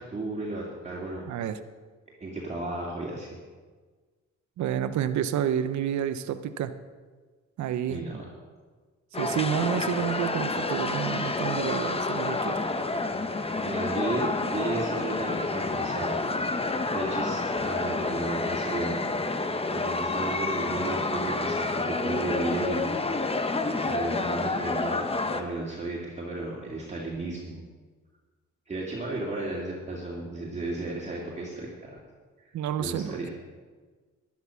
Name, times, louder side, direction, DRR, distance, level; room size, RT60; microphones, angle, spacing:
voice 1, 0.0-1.3 2.2-3.4 7.9-8.2 13.6-16.2 16.5-19.0 19.7-22.9 23.8-27.6 28.7-31.9 32.8-33.3, right 2 dB, 20° right, -5 dB, 2.6 m, -34 dB
voice 2, 1.3-1.6 4.6-6.7 7.6-8.0 9.2-12.6 32.5-33.3, right 9 dB, 70° right, 10 dB, 0.8 m, -29 dB
sound 1, 9.1-25.4, left 3 dB, 20° left, 1.0 m, -29 dB
12.5 x 10.5 x 5.8 m, 1.4 s
cardioid pair, 90°, 30 cm